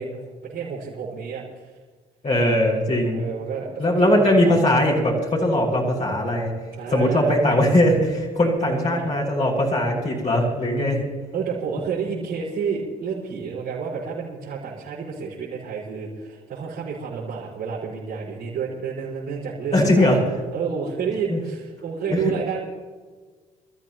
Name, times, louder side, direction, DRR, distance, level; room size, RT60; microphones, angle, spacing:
voice 1, 0.0-1.7 3.1-4.5 6.8-7.4 8.6-9.1 10.8-20.2 20.5-22.6, right 6 dB, 65° right, -8 dB, 4.9 m, -30 dB
voice 2, 2.2-3.2 3.8-6.5 6.9-11.0 19.7-20.2 21.3-21.4, left 1 dB, 40° left, -5 dB, 6.0 m, -20 dB
26.5 x 14.0 x 3.0 m, 1.4 s
hypercardioid pair, 50°, 19 cm